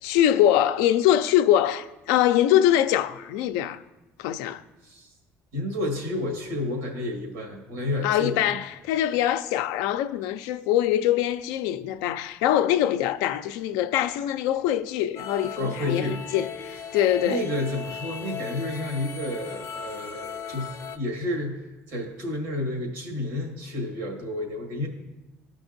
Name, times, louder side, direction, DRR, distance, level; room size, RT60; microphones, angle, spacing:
voice 1, 0.0-3.8 4.2-4.6 8.0-17.4, left 11 dB, 85° left, 0.4 m, -23 dB
voice 2, 5.5-8.6 15.6-16.2 17.2-21.6 21.9-24.9, left 1 dB, 90° right, 1.8 m, -30 dB
sound 1, 15.2-21.0, left 6 dB, 50° left, 0.7 m, -37 dB
14.0 x 5.2 x 2.6 m
supercardioid pair, 80°, 6 cm